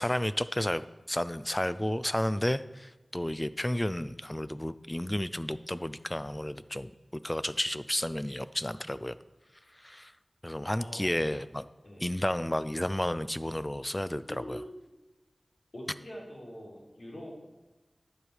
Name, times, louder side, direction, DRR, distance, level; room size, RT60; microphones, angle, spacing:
voice 1, 0.0-9.2 9.8-10.1 10.4-11.7 12.0-14.6, left 1 dB, 15° left, 14 dB, 0.4 m, -32 dB
voice 2, 10.8-11.1 11.8-12.0 14.3-14.8 15.7-17.3, equal, 75° left, -4 dB, 3.8 m, -43 dB
10.5 x 8.0 x 4.9 m, 1.1 s
wide cardioid pair, 65°, 0 cm